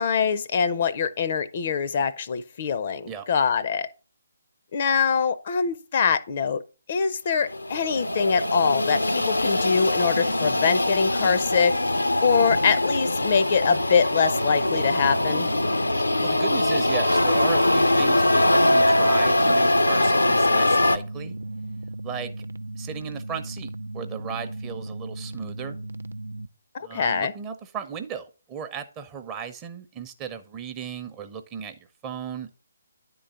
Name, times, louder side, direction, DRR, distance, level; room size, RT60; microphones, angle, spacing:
voice 1, 0.0-3.9 4.7-6.6 6.9-11.7 12.2-15.5 26.7-27.3, left 6 dB, 45° left, 0.5 m, -24 dB
sound 1, 7.5-21.0, left 1 dB, 90° left, 0.7 m, -22 dB
sound 2, 14.3-26.5, right 2 dB, 75° right, 0.5 m, -36 dB
voice 2, 16.2-21.4 22.0-22.3 22.8-25.8 26.8-32.5, right 7 dB, 20° right, 0.7 m, -36 dB
9.9 x 3.9 x 5.5 m
figure-of-eight pair, 145°, 0 cm